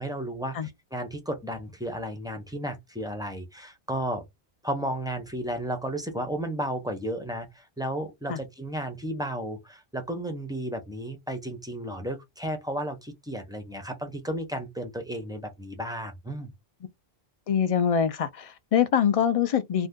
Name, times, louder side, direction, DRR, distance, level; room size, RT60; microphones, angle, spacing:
voice 1, 0.0-4.2 4.6-16.5, right 1 dB, 5° right, 0.5 m, -33 dB
voice 2, 17.5-19.9, left 8 dB, 55° left, 0.4 m, -24 dB
2.6 x 2.3 x 3.5 m
omnidirectional pair, 1.1 m